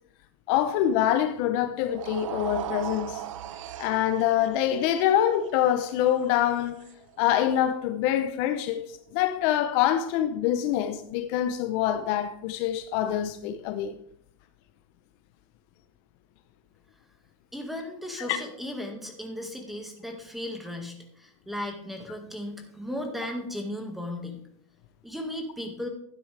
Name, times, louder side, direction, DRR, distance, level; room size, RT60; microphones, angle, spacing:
voice 1, 0.5-3.2 3.8-6.8 7.2-8.8 9.1-14.0 18.3-18.4, left 11 dB, 50° left, 0.8 m, -25 dB
sound 1, 1.8-8.1, right 11 dB, 85° right, 0.7 m, -39 dB
voice 2, 17.5-24.4 25.0-25.9, left 1 dB, ahead, 1.9 m, -36 dB
12.5 x 9.6 x 3.4 m
supercardioid pair, 145°, 16 cm